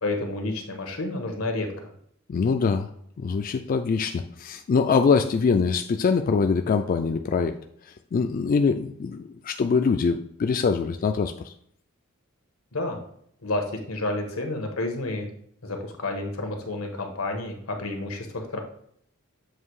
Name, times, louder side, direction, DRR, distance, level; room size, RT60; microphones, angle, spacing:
voice 1, 0.0-1.9 12.7-13.0 13.4-15.3 15.6-18.6, left 2 dB, 90° left, 3 dB, 1.2 m, -30 dB
voice 2, 2.3-2.9 3.2-7.6 8.1-11.5, left 5 dB, 40° left, 7 dB, 0.3 m, -23 dB
7.5 x 2.7 x 4.7 m, 0.67 s
head